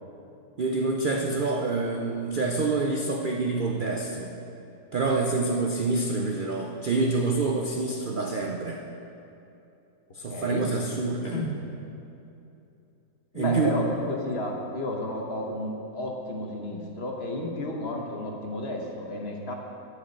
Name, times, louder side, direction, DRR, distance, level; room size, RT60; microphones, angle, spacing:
voice 1, 0.6-4.3 4.9-8.8 10.1-11.4 13.3-13.8, right 3 dB, 80° right, 1 dB, 0.4 m, -27 dB
voice 2, 10.3-10.7 11.2-11.5 13.3-19.5, left 1 dB, 45° left, 0 dB, 1.2 m, -32 dB
11.0 x 4.8 x 8.3 m, 2.8 s
omnidirectional pair, 1.7 m